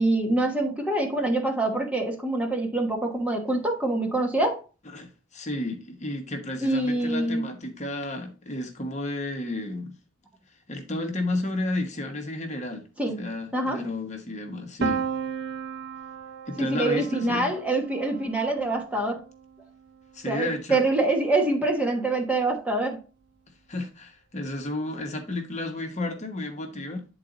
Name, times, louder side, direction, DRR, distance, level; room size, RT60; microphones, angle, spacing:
voice 1, 0.0-4.6 6.6-7.4 13.0-13.2 13.5-13.8 16.6-19.2 20.3-23.0, right 2 dB, 5° right, 1.2 m, -25 dB
voice 2, 4.8-10.0 10.7-12.9 13.2-15.1 16.5-17.5 20.1-20.8 23.7-27.1, left 2 dB, 35° left, 1.1 m, -32 dB
Piano, 14.8-20.6, right 6 dB, 55° right, 0.6 m, -35 dB
9.4 x 4.0 x 3.9 m
head